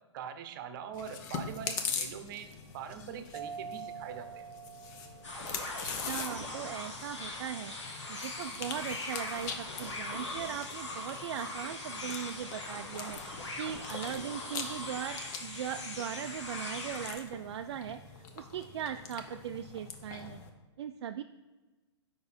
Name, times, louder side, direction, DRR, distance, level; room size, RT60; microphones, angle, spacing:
voice 1, 0.1-4.5, right 8 dB, 45° right, 9 dB, 0.8 m, -43 dB
Chewing mastication, 0.9-20.5, left 6 dB, 40° left, 0.9 m, -43 dB
Mallet percussion, 3.3-5.9, right 6 dB, 15° right, 0.9 m, -45 dB
sound 1, 5.2-17.1, left 2 dB, 80° left, 1.8 m, -41 dB
voice 2, 5.8-18.0 18.3-20.4 20.8-21.2, right 9 dB, 65° right, 6 dB, 0.4 m, -39 dB
6.7 x 5.4 x 4.3 m, 1.2 s
hypercardioid pair, 130°, 15 cm